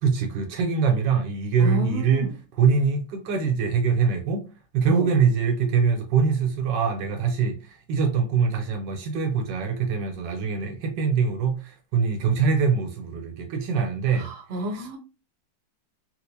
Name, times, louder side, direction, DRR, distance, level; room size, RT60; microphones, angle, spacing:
voice 1, 0.0-4.4 4.7-7.6 7.9-14.3 14.7-14.9, right 5 dB, 80° right, 1.4 m, -23 dB
voice 2, 1.6-2.3 4.9-5.0 14.2-15.0, equal, 50° right, 0.8 m, -30 dB
4.3 x 2.1 x 2.6 m
omnidirectional pair, 1.9 m